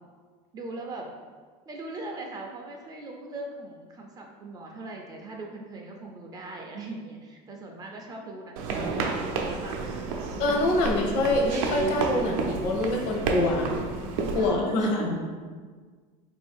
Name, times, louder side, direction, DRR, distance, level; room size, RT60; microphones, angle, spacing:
voice 1, 0.5-1.1 1.7-10.3 10.5-10.8 14.3-15.1, right 2 dB, 20° right, 1 dB, 0.4 m, -40 dB
sound 1, 8.6-14.5, right 4 dB, 75° right, 0.5 m, -30 dB
voice 2, 10.4-13.7 14.3-15.2, left 2 dB, 65° left, 1 dB, 0.8 m, -25 dB
3.8 x 2.6 x 3.4 m, 1.5 s
cardioid pair, 150°, 17 cm